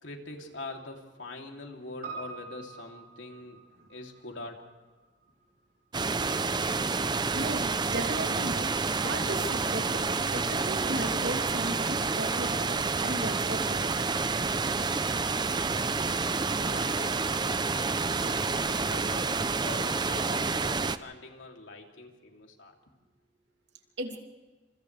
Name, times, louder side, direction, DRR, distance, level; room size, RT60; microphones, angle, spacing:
voice 1, 0.0-3.6 3.9-4.6 16.5-17.7 18.0-22.7, left 2 dB, 90° left, 1 dB, 3.1 m, -44 dB
Piano, 2.0-6.5 6.8-6.9, right 5 dB, 55° right, 5.7 m, -46 dB
sound 1, 5.9-21.0, right 4 dB, 25° right, 0.6 m, -29 dB
voice 2, 7.3-8.7 9.0-13.9 24.0-24.2, right 1 dB, 70° right, 2 dB, 2.9 m, -36 dB
29.5 x 27.5 x 3.4 m, 1.3 s
head